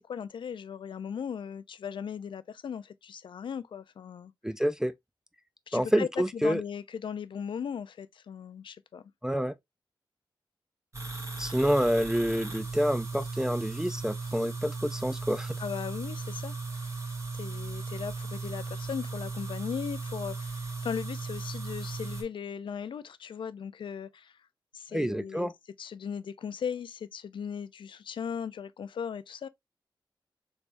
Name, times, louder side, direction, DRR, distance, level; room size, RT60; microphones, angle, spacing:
voice 1, 0.0-4.3 5.7-9.0 15.6-16.9 17.4-24.4 24.7-25.5 25.8-29.5, left 7 dB, 70° left, 0.3 m, -38 dB
voice 2, 4.4-4.9 5.7-6.6 9.2-9.5 11.4-15.6 24.9-25.5, equal, 5° right, 0.3 m, -28 dB
sound 1, 10.9-22.2, right 4 dB, 35° right, 1.3 m, -37 dB
3.3 x 3.1 x 2.5 m
cardioid pair, 70°, 9 cm